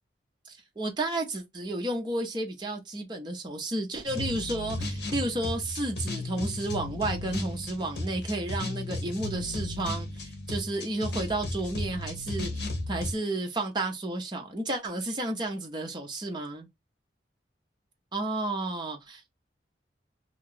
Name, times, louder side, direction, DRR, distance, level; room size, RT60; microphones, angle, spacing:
voice 1, 0.5-12.5 12.9-16.7 18.1-19.3, right 2 dB, 25° right, 0.7 m, -32 dB
sound 1, 4.1-13.1, left 2 dB, 65° left, 1.0 m, -35 dB
2.8 x 2.3 x 3.8 m
head